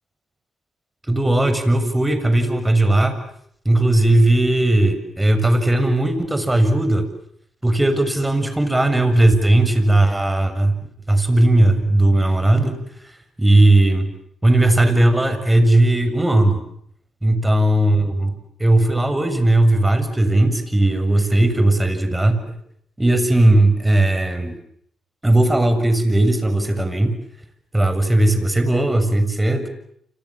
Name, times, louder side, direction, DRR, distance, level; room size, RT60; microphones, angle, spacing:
voice 1, 1.1-3.2 3.7-7.1 7.6-10.8 11.1-12.8 13.0-14.1 14.4-16.6 17.2-22.6 23.0-24.5 25.2-27.2 27.7-29.7, right 1 dB, 15° right, 9 dB, 7.1 m, -17 dB
29.5 x 27.0 x 7.5 m, 0.69 s
supercardioid pair, 60°, 0 cm